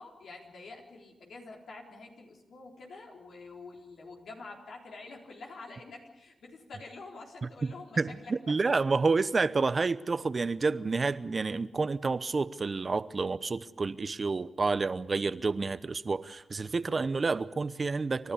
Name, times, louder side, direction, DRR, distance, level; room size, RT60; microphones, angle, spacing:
voice 1, 0.0-8.6, left 3 dB, 75° left, 0 dB, 4.0 m, -47 dB
voice 2, 8.0-18.3, right 4 dB, 50° right, 15 dB, 0.8 m, -29 dB
28.0 x 12.5 x 8.6 m, 0.99 s
supercardioid pair, 45°, 0 cm